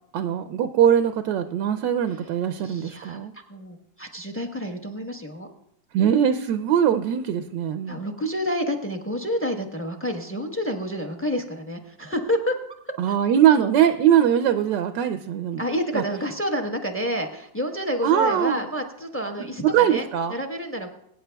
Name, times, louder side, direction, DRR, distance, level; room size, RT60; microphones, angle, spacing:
voice 1, 0.1-3.3 5.9-8.0 13.0-15.6 15.9-16.0 18.0-18.6 19.6-20.3, right 9 dB, 80° right, 9 dB, 1.2 m, -21 dB
voice 2, 2.6-5.5 7.9-12.6 12.8-13.2 15.6-20.9, equal, 10° left, 3 dB, 0.6 m, -29 dB
23.0 x 9.3 x 2.2 m, 0.78 s
omnidirectional pair, 1.9 m